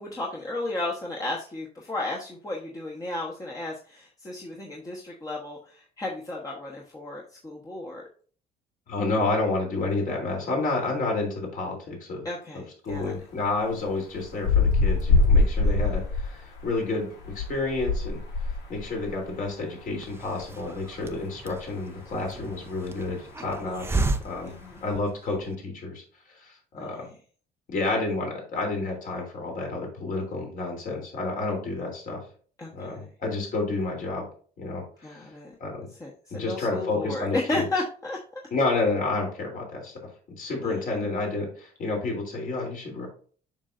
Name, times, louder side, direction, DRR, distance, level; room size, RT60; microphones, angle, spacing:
voice 1, 0.0-8.0 12.2-13.1 15.6-15.9 24.4-24.8 26.8-27.0 32.6-33.1 35.0-35.5 36.0-38.2 40.6-41.1, left 2 dB, 20° left, -3 dB, 1.2 m, -34 dB
voice 2, 8.9-12.2 12.8-18.2 18.7-24.5 24.8-26.0 26.4-27.1 27.7-32.2 32.7-34.3 34.6-35.2 35.6-35.9 36.3-37.7 38.5-39.9 40.4-43.1, left 3 dB, 55° left, 0 dB, 3.2 m, -30 dB
sound 1, 12.9-13.0 14.1-16.7 17.2-19.1 19.4-19.5, left 3 dB, 85° left, 2.0 m, -23 dB
Hiss, 20.0-25.5, right 3 dB, 15° right, 0.6 m, -34 dB
7.2 x 6.1 x 2.6 m, 0.43 s
cardioid pair, 110°, 17 cm